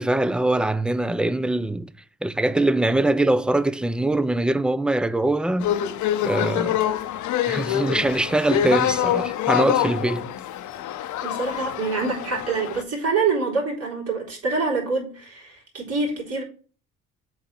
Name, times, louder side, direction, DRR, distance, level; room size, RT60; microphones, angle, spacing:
voice 1, 0.0-1.9 2.2-5.7 6.2-6.9 7.5-10.3, right 2 dB, 5° right, 0.3 m, -22 dB
sound 1, 5.6-12.8, left 11 dB, 75° left, 0.7 m, -25 dB
voice 2, 11.2-16.4, right 4 dB, 55° right, 3.3 m, -26 dB
7.6 x 3.3 x 5.7 m
cardioid pair, 90°, 30 cm